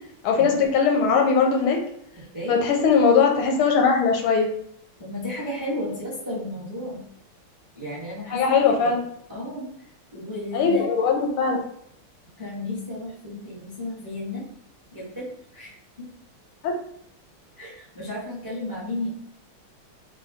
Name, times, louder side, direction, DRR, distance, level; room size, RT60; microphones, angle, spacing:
voice 1, 0.2-1.8 2.5-4.5 8.3-9.0 10.5-11.6 16.6-16.7, left 5 dB, 85° left, 2 dB, 1.5 m, -20 dB
voice 2, 5.0-7.0 7.7-8.9 9.3-9.7 10.1-10.8 12.4-14.4 14.9-15.3 15.5-15.7 16.0-16.1 17.6-19.1, left 1 dB, 15° right, -7 dB, 0.8 m, -33 dB
3.9 x 2.2 x 3.5 m, 0.70 s
omnidirectional pair, 2.4 m